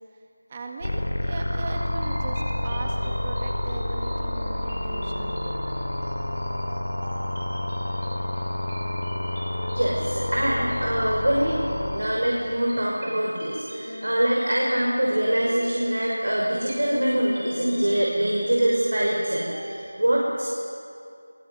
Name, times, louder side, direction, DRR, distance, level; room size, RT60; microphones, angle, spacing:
voice 1, 0.5-5.5, right 2 dB, 20° right, 1 dB, 1.8 m, -38 dB
sound 1, 0.8-12.0, left 1 dB, 60° left, 5.3 m, -29 dB
sound 2, 1.6-19.9, right 1 dB, 60° right, 6.1 m, -41 dB
voice 2, 9.7-11.6 11.9-20.5, right 1 dB, 90° right, -3 dB, 5.8 m, -24 dB
Wind instrument woodwind instrument, 13.8-18.0, left 2 dB, 35° left, 7.2 m, -44 dB
22.5 x 22.5 x 9.4 m, 2.4 s
figure-of-eight pair, 175°, 0 cm